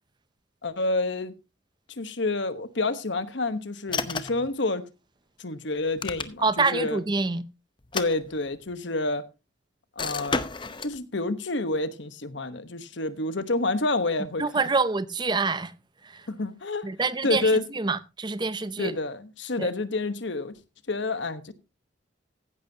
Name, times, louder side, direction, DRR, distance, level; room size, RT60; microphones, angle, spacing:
voice 1, 0.6-1.3 2.0-4.9 5.4-6.5 6.7-7.0 7.9-9.2 10.0-10.4 10.8-14.6 16.3-16.9 17.2-17.6 18.8-20.6 20.9-21.5, left 2 dB, 65° left, 1.1 m, -28 dB
sound 1, 3.9-4.5 5.8-6.7 7.8-8.7 10.0-11.0, left 4 dB, 25° left, 0.7 m, -32 dB
voice 2, 6.4-7.4 14.4-15.7 16.0-16.3 16.8-18.9 19.6-19.7, right 3 dB, 20° right, 0.5 m, -26 dB
15.5 x 10.5 x 2.8 m
head